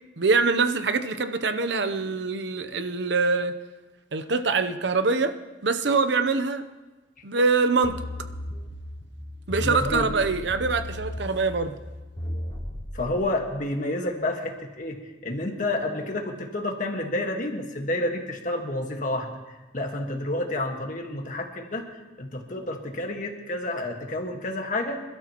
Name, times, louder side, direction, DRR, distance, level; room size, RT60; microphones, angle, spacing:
voice 1, 0.2-3.5 4.1-5.3 5.6-6.6 7.2-8.0 9.5-11.8, right 4 dB, 70° right, 10 dB, 0.8 m, -24 dB
sound 1, 7.8-13.2, left 1 dB, 25° left, 3.1 m, -35 dB
voice 2, 9.6-10.1 12.9-21.9 22.2-25.0, left 1 dB, 45° left, 2 dB, 1.6 m, -30 dB
27.0 x 12.5 x 3.0 m, 1.2 s
head